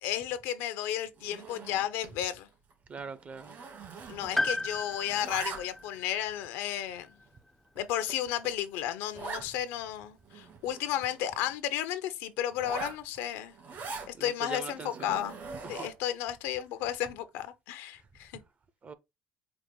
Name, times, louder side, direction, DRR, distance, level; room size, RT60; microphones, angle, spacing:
voice 1, 0.0-2.5 4.1-7.1 7.8-13.5 14.2-15.4 15.7-18.3, left 11 dB, 85° left, 0.6 m, -33 dB
Zipper (clothing), 1.2-2.2 2.5-2.7 3.0-4.7 4.9-6.0 6.6-6.7 7.3-7.4 7.8-7.9 8.1-8.2 8.4-8.5 9.1-9.5 9.9-10.0 10.2-11.5 12.5-14.1 14.7-16.1, right 4 dB, 60° right, 2.5 m, -42 dB
voice 2, 2.9-3.6 14.1-15.2 15.6-15.9 18.8-18.9, right 5 dB, 35° right, 0.6 m, -42 dB
Piano, 4.4-8.5 9.7-9.8, left 2 dB, 5° left, 0.4 m, -36 dB
4.9 x 2.1 x 3.8 m
supercardioid pair, 90°, 4 cm